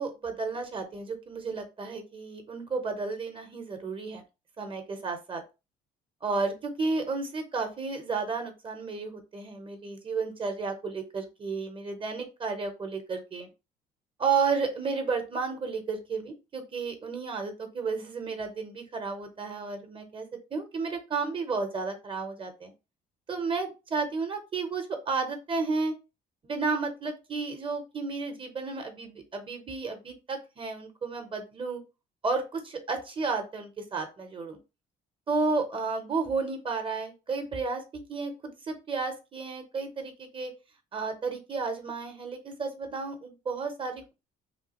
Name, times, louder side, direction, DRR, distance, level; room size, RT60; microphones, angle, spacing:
voice 1, 0.0-4.2 4.6-5.4 6.2-13.5 14.2-20.3 20.5-22.7 23.3-25.9 26.4-31.8 32.2-34.6 35.3-40.5 40.9-44.1, right 4 dB, 30° right, 5 dB, 0.7 m, -32 dB
3.2 x 2.4 x 2.9 m, 0.28 s
cardioid pair, 110°, 17 cm